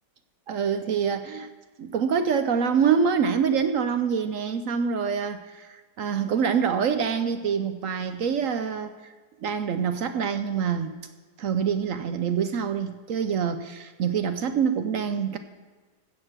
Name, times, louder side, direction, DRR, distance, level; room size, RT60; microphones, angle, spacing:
voice 1, 0.5-1.5 1.8-8.9 9.4-10.9 11.4-15.4, right 7 dB, 65° right, 9 dB, 0.9 m, -25 dB
15.5 x 6.6 x 6.0 m, 1.4 s
omnidirectional pair, 1.8 m